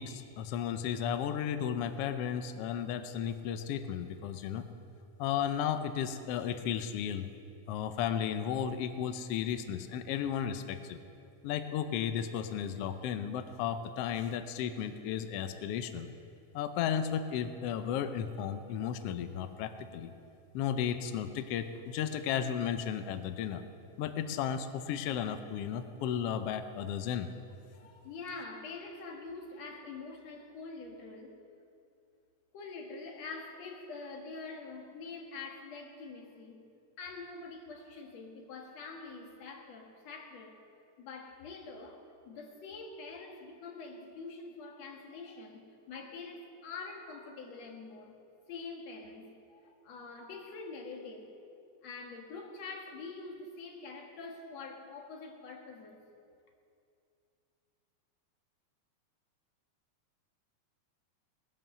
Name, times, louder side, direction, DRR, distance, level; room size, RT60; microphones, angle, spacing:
voice 1, 0.0-4.7 5.2-7.3 7.7-11.0 11.4-16.1 16.5-20.1 20.5-23.6 24.0-27.3, left 8 dB, 80° left, 1.3 m, -34 dB
voice 2, 27.7-31.4 32.5-36.6 37.0-40.6 41.0-48.2 48.5-51.3 51.8-56.0, left 4 dB, 60° left, 2.6 m, -45 dB
19.0 x 11.0 x 6.7 m
omnidirectional pair, 3.5 m